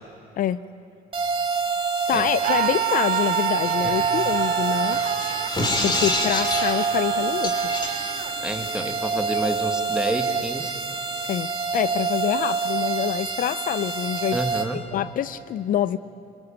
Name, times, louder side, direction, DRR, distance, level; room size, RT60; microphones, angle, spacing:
sound 1, 1.1-14.6, right 5 dB, 30° right, 2.5 m, -27 dB
voice 1, 2.1-5.0 5.8-7.5 11.3-11.5 11.7-14.4 14.9-16.0, left 11 dB, 55° left, 15 dB, 0.5 m, -26 dB
Screaming, 2.4-8.3, right 10 dB, 55° right, 0.8 m, -28 dB
sound 2, 3.6-9.0, left 2 dB, 25° left, 3.3 m, -29 dB
voice 2, 8.4-10.8 14.3-14.8, right 1 dB, 5° right, 5 dB, 1.9 m, -29 dB
25.5 x 20.5 x 8.9 m, 2.7 s
cardioid pair, 110°, 17 cm